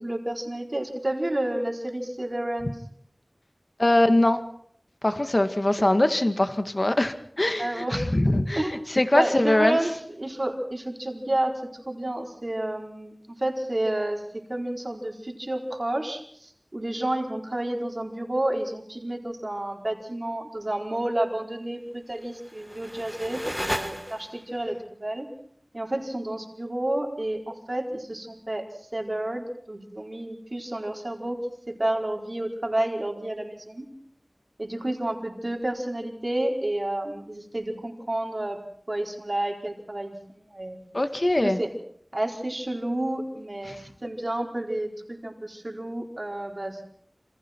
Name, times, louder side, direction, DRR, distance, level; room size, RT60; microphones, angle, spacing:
voice 1, 0.0-2.7 7.6-8.0 8.6-8.8 9.1-9.9 10.2-13.1 13.4-14.2 14.5-25.3 25.7-31.4 31.7-33.9 34.6-38.6 38.9-40.8 41.4-41.7 42.1-46.9, right 1 dB, 50° right, 1 dB, 4.5 m, -30 dB
voice 2, 3.8-4.4 5.0-8.6 8.9-9.8 40.9-41.6 43.7-43.8, left 1 dB, 50° left, 8 dB, 1.8 m, -22 dB
sound 1, 22.2-24.6, equal, 5° left, 1.1 m, -34 dB
28.0 x 26.5 x 4.6 m, 0.64 s
wide cardioid pair, 40°, 0 cm